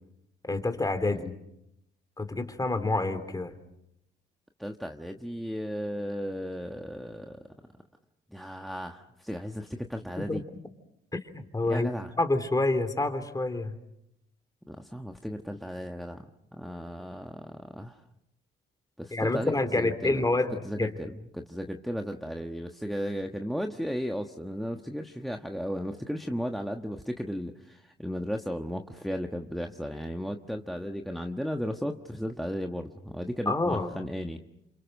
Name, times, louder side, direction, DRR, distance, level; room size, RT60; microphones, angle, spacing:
voice 1, 0.5-1.3 2.2-3.5 10.2-10.4 11.1-11.9 12.2-13.7 19.1-20.9 33.5-33.9, left 2 dB, 20° left, 9 dB, 3.0 m, -28 dB
voice 2, 4.6-7.4 8.3-10.4 11.7-12.1 14.7-16.2 16.5-18.0 19.0-20.3 20.6-34.4, equal, ahead, 5 dB, 1.3 m, -35 dB
28.5 x 26.0 x 6.5 m, 0.81 s
cardioid pair, 90°, 20 cm